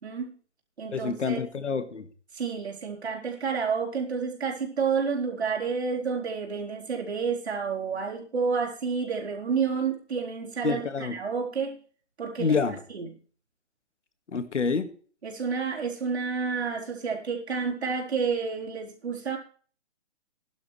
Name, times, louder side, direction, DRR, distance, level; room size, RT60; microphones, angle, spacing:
voice 1, 0.0-0.3 0.8-1.4 2.3-11.8 12.2-12.6 12.9-13.1 15.2-19.4, right 5 dB, 65° right, -1 dB, 4.3 m, -30 dB
voice 2, 0.9-2.1 10.6-11.2 12.4-12.8 14.3-14.9, left 5 dB, 90° left, 10 dB, 1.8 m, -27 dB
16.0 x 11.5 x 3.3 m, 0.41 s
hypercardioid pair, 175°, 35 cm